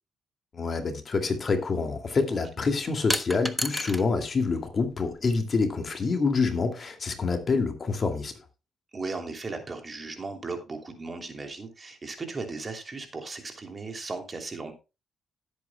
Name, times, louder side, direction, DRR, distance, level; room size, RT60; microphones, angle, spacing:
voice 1, 0.5-8.3, left 4 dB, 40° left, 6 dB, 2.3 m, -27 dB
sound 1, 1.2-1.3 3.1-4.1 4.4-5.3, left 1 dB, 5° left, 1.1 m, -32 dB
voice 2, 8.9-14.7, right 3 dB, 30° right, 5 dB, 2.8 m, -36 dB
17.5 x 8.4 x 2.2 m, 0.28 s
cardioid pair, 90°, 0 cm